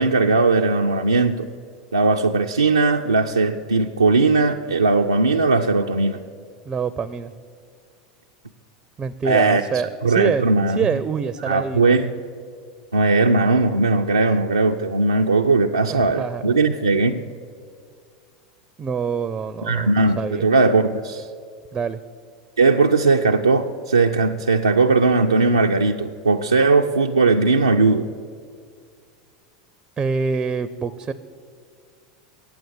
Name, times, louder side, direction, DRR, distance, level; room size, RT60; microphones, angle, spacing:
voice 1, 0.0-1.5 1.9-6.2 9.3-9.6 10.0-10.8 11.5-12.1 12.9-17.2 19.7-21.3 22.6-28.1, right 3 dB, 90° right, 1 dB, 0.4 m, -18 dB
voice 2, 6.7-7.3 9.0-10.4 10.7-12.0 15.9-16.5 18.8-20.5 21.7-22.0 30.0-31.1, right 5 dB, 25° right, 14 dB, 0.4 m, -26 dB
9.0 x 7.9 x 8.6 m, 2.1 s
figure-of-eight pair, 85°, 3 cm